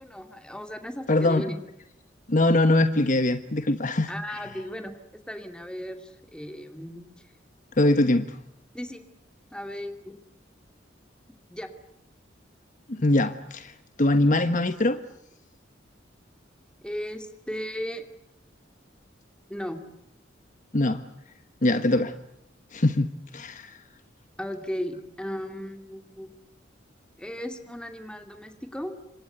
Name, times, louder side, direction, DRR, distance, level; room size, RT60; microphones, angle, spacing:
voice 1, 0.0-1.6 4.1-7.3 8.7-9.0 9.5-10.2 11.5-11.7 16.8-18.0 19.5-19.8 24.4-26.3 27.2-28.9, equal, 5° left, 7 dB, 2.5 m, -36 dB
voice 2, 1.1-1.4 2.3-4.1 7.8-8.4 12.9-13.7 14.0-15.0 20.7-21.0 21.6-22.1 22.7-23.8, left 2 dB, 45° left, 10 dB, 1.3 m, -22 dB
28.5 x 25.5 x 8.0 m, 0.79 s
head